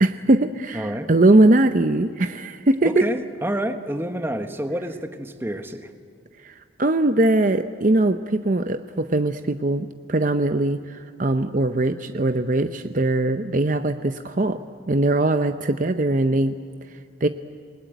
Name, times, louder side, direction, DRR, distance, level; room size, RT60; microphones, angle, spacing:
voice 1, 0.0-2.9 6.4-14.6 14.9-16.6 17.2-17.3, right 2 dB, 40° right, 9 dB, 0.7 m, -21 dB
voice 2, 0.7-1.1 2.8-5.9, right 1 dB, 10° right, 7 dB, 1.3 m, -28 dB
27.5 x 20.5 x 9.2 m, 2.3 s
head